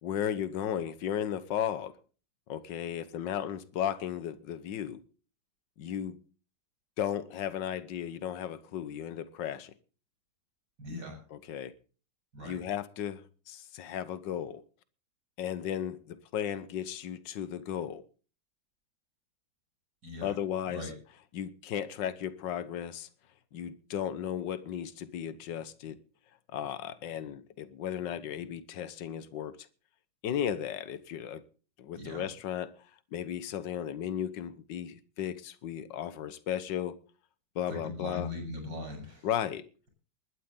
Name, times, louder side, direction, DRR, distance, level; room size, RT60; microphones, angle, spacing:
voice 1, 0.0-2.0 2.5-5.0 5.8-6.2 7.0-9.7 11.3-11.7 12.4-13.2 13.5-14.6 15.4-18.0 20.2-20.9 21.3-23.1 23.5-26.0 26.5-29.6 30.2-31.4 31.8-32.7 33.1-36.9 37.5-38.3 39.2-39.7, left 9 dB, 70° left, 1.7 m, -35 dB
voice 2, 10.8-11.2 12.3-12.7 20.0-20.3 20.7-20.9 32.0-32.3 37.7-39.3, left 2 dB, 60° right, 8.6 m, -40 dB
20.5 x 12.0 x 3.8 m
omnidirectional pair, 2.1 m